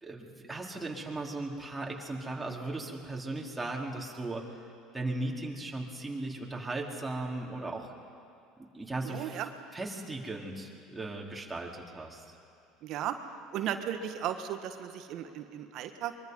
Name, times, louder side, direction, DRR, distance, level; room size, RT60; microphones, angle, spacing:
voice 1, 0.0-4.4 4.9-7.9 8.6-9.5 9.7-12.3, right 2 dB, 15° right, -2 dB, 3.8 m, -37 dB
voice 2, 9.1-9.5 12.8-13.1 13.5-16.1, right 10 dB, 55° right, 8 dB, 1.5 m, -35 dB
24.0 x 23.0 x 5.5 m, 2.5 s
hypercardioid pair, 70°, 0 cm